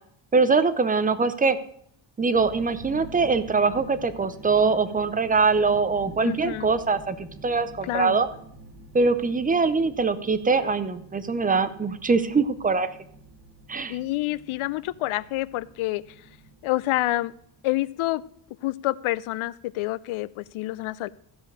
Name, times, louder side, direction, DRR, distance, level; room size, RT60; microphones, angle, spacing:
voice 1, 0.3-1.6 2.2-8.3 8.9-12.9 13.7-14.0, right 4 dB, 20° right, 12 dB, 0.6 m, -23 dB
sound 1, 2.3-18.2, right 2 dB, 45° right, 1.9 m, -47 dB
voice 2, 6.2-6.7 7.9-8.2 13.9-16.0 16.6-17.3 17.6-18.2 18.6-21.1, left 17 dB, 80° left, 19 dB, 0.6 m, -28 dB
14.5 x 5.1 x 6.5 m, 0.68 s
cardioid pair, 145°, 49 cm